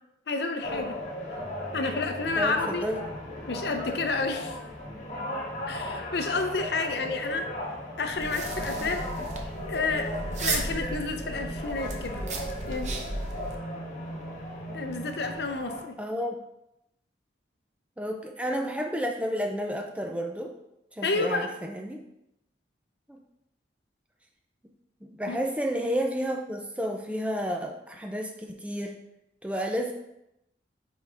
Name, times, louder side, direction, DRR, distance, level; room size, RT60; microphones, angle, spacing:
voice 1, 0.3-0.9 1.7-2.9 3.5-4.5 5.7-7.5 8.0-9.0 9.7-10.1 10.4-12.2 12.7-13.0 14.7-15.9 21.0-21.5 25.3-25.4, left 3 dB, 65° left, 6 dB, 0.6 m, -30 dB
sound 1, 0.6-15.8, equal, 40° left, 1.5 m, -36 dB
voice 2, 2.4-3.0 16.0-16.4 18.0-20.5 21.0-22.0 23.1-23.2 25.0-29.0 29.4-29.9, equal, 5° right, 2 dB, 0.4 m, -31 dB
sound 2, 8.1-13.6, right 2 dB, 40° right, 0.7 m, -35 dB
5.5 x 4.7 x 3.8 m, 0.86 s
head